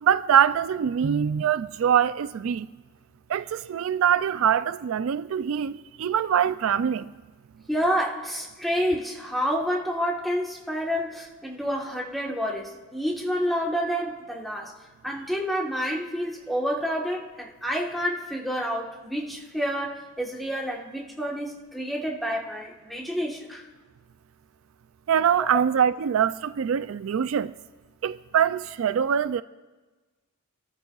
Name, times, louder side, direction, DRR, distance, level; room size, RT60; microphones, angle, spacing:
voice 1, 0.0-2.7 3.3-7.1 25.1-27.5 28.0-29.4, right 8 dB, 70° right, 0.3 m, -23 dB
voice 2, 7.7-14.8 15.0-23.6 25.4-25.5, equal, ahead, 1.3 m, -29 dB
28.5 x 14.0 x 2.4 m
head